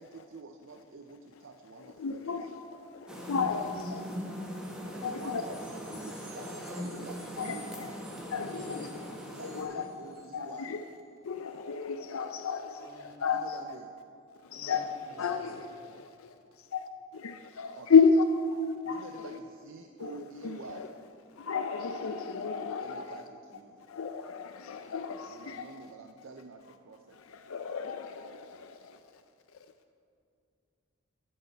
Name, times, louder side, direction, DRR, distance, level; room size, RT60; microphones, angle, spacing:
voice 1, 0.0-2.5 4.9-7.8 8.3-9.0 9.3-10.7 13.3-14.0 17.8-17.9 18.8-20.9 22.8-23.8 25.3-27.2, right 3 dB, 65° right, 0.6 m, -48 dB
voice 2, 1.8-4.1 5.0-5.4 6.4-6.5 6.8-7.0 7.4-7.9 8.2-8.9 9.4-9.9 10.3-10.9 11.2-13.6 14.4-19.0 20.0-20.9 21.4-23.2 23.9-25.7 27.1-29.2 29.5-29.7, left 5 dB, 85° left, 0.5 m, -31 dB
sound 1, 3.1-9.6, equal, 5° right, 1.2 m, -40 dB
sound 2, 4.6-10.8, equal, 20° right, 2.6 m, -54 dB
voice 3, 12.8-13.1 14.5-15.8, equal, 15° left, 2.9 m, -53 dB
12.5 x 11.0 x 4.5 m
head